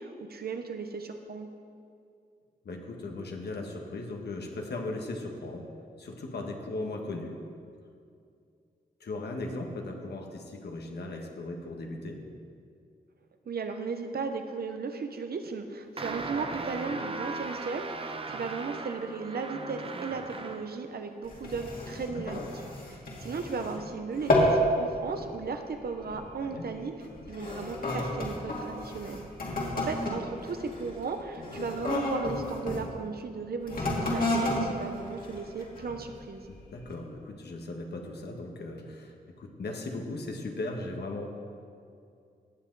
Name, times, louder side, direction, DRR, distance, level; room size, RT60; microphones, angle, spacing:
voice 1, 0.0-1.5 13.5-22.4 22.9-26.9 27.3-29.2 29.5-36.4, right 4 dB, 70° right, 6 dB, 0.9 m, -36 dB
voice 2, 2.6-5.7 6.0-7.4 9.0-12.3 16.8-17.0 22.1-22.5 26.3-26.6 31.4-31.7 36.5-41.3, left 2 dB, 80° left, 2 dB, 1.4 m, -38 dB
sound 1, 16.0-20.8, right 3 dB, 35° right, 0.7 m, -38 dB
sound 2, 21.2-23.8 24.1-24.7 25.0-25.4 26.0-26.3 27.0-32.8 33.6-36.0 36.5-36.6, left 1 dB, 60° left, 2.4 m, -31 dB
17.0 x 7.5 x 4.0 m, 2.4 s
cardioid pair, 80°, 17 cm